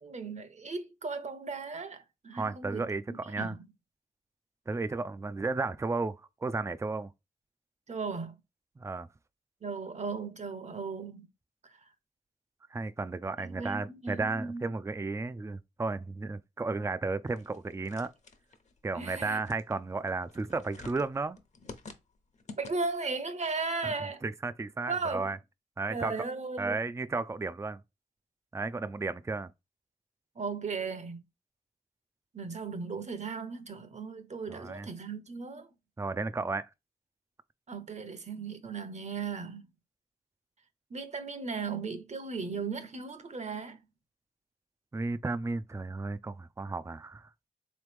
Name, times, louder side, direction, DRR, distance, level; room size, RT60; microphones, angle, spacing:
voice 1, 0.0-3.7 7.9-8.4 9.6-11.3 11.6-11.9 13.4-14.6 18.9-19.4 22.6-24.2 24.8-25.3 25.9-26.8 30.4-31.3 32.3-35.7 37.7-39.7 40.9-43.8, right 4 dB, 50° right, 0.9 m, -36 dB
voice 2, 2.3-3.6 4.7-7.1 8.8-9.1 12.7-18.1 18.8-21.4 23.8-23.9 24.2-25.4 25.8-26.1 26.6-27.8 28.5-29.5 34.5-34.9 36.0-36.7 44.9-47.3, right 3 dB, 20° right, 0.4 m, -33 dB
sound 1, 17.3-23.1, left 3 dB, 50° left, 0.9 m, -51 dB
3.7 x 3.1 x 3.3 m
cardioid pair, 50°, 15 cm